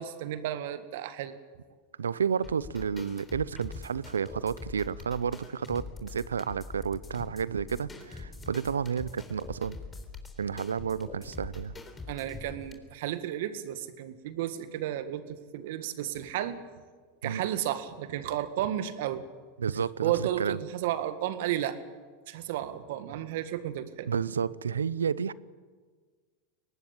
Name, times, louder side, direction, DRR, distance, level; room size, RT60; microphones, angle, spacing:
voice 1, 0.0-1.3 12.1-16.6 17.2-19.2 20.0-21.8 22.3-24.1, right 12 dB, 70° right, 11 dB, 1.8 m, -33 dB
voice 2, 2.0-9.8 10.4-11.7 17.2-17.4 19.6-20.6 24.1-25.3, right 7 dB, 90° right, 21 dB, 0.6 m, -31 dB
sound 1, 2.4-12.7, left 3 dB, 20° left, 3.7 m, -44 dB
22.5 x 19.0 x 8.9 m, 1.5 s
hypercardioid pair, 95°, 0 cm